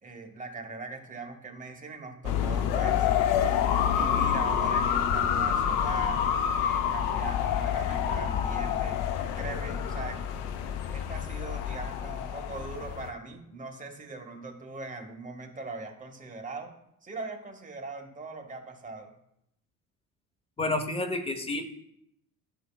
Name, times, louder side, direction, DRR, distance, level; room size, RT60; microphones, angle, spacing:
voice 1, 0.0-3.1 3.8-6.3 6.6-9.0 9.4-10.3 10.9-16.7 17.0-19.1, right 3 dB, 15° right, 3 dB, 1.4 m, -40 dB
sound 1, 2.2-13.1, left 8 dB, 55° left, 0.7 m, -28 dB
voice 2, 20.6-21.6, left 2 dB, 10° left, 5 dB, 1.0 m, -29 dB
11.0 x 5.0 x 2.4 m, 0.77 s
figure-of-eight pair, 55°, 46 cm